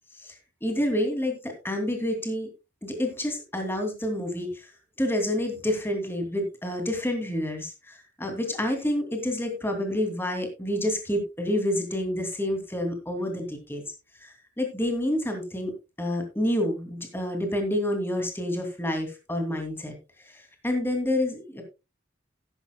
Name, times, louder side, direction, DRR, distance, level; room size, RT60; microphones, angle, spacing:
voice 1, 0.6-2.5 2.8-4.7 5.0-13.8 14.2-15.7 16.0-20.0 20.2-21.6, left 1 dB, 10° left, 4 dB, 2.6 m, -28 dB
14.5 x 11.5 x 2.2 m, 0.27 s
head